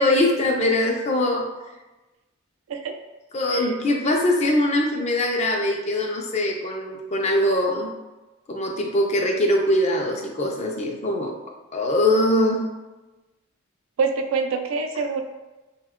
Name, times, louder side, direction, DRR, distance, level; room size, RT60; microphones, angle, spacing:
voice 1, 0.0-1.4 3.3-7.9 8.5-11.3 11.7-12.6, left 1 dB, 30° left, 1 dB, 0.4 m, -22 dB
voice 2, 14.0-15.2, right 4 dB, 75° right, 5 dB, 0.4 m, -25 dB
2.7 x 2.2 x 3.5 m, 1.1 s
head